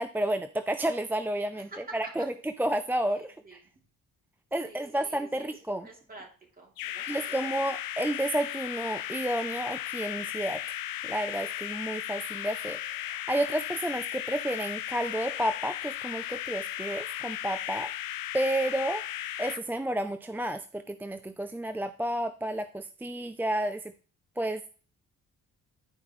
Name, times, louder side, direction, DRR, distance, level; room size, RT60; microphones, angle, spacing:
voice 1, 0.0-2.3 2.6-3.6 4.5-5.9 7.1-10.6 11.0-17.9 18.3-19.0 19.4-23.9 24.4-24.7, right 1 dB, 5° right, 10 dB, 0.3 m, -31 dB
voice 2, 1.5-2.1 3.1-3.6 4.6-7.6, right 2 dB, 25° right, -1 dB, 2.9 m, -49 dB
sound 1, 6.8-19.6, left 12 dB, 80° left, 0.7 m, -36 dB
11.0 x 4.8 x 3.1 m, 0.41 s
cardioid pair, 85°, 34 cm